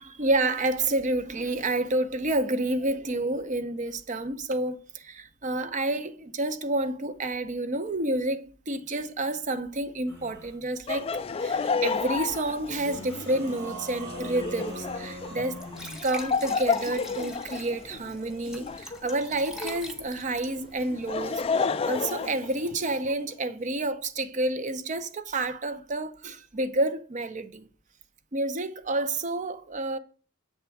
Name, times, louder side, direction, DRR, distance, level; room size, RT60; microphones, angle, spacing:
voice 1, 0.0-11.1 11.4-15.6 16.0-27.7 28.3-30.0, right 2 dB, 40° right, 0.6 m, -29 dB
sound 1, 10.1-10.6 12.7-16.1, equal, 60° right, 2.0 m, -41 dB
Laughter, 10.9-19.9 20.8-23.1, left 4 dB, 30° left, 0.3 m, -31 dB
Glass / Trickle dribble / Fill (with liquid), 14.1-21.5, equal, 5° right, 0.8 m, -45 dB
7.4 x 3.4 x 4.6 m
head